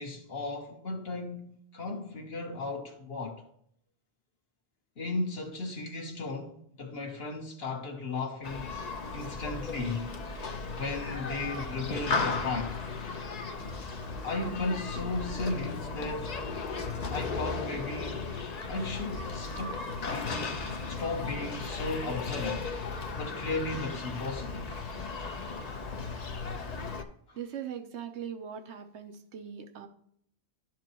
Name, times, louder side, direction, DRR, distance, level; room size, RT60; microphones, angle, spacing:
voice 1, 0.0-3.4 5.0-8.7 9.1-10.1 10.8-12.8 14.2-16.4 17.1-18.3 18.7-20.6 20.9-22.7 23.1-24.7 27.3-27.4, left 3 dB, 60° left, 1.5 m, -35 dB
Human group actions, 8.4-27.0, left 4 dB, 45° left, 0.7 m, -36 dB
voice 2, 27.3-29.9, right 8 dB, 85° right, 1.1 m, -40 dB
12.0 x 4.6 x 2.9 m
omnidirectional pair, 1.1 m